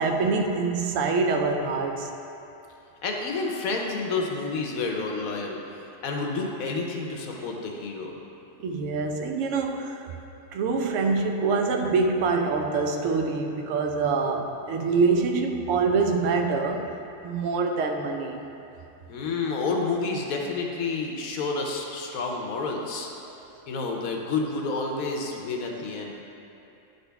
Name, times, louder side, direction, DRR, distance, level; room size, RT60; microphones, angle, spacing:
voice 1, 0.0-2.1 8.6-10.0 10.5-16.9 17.2-18.4 25.6-25.8, right 4 dB, 70° right, 4 dB, 0.9 m, -25 dB
voice 2, 3.0-5.6 6.0-8.1 19.1-23.1 23.7-26.2, left 3 dB, 80° left, 1 dB, 1.2 m, -29 dB
10.5 x 4.0 x 3.4 m, 2.8 s
omnidirectional pair, 1.5 m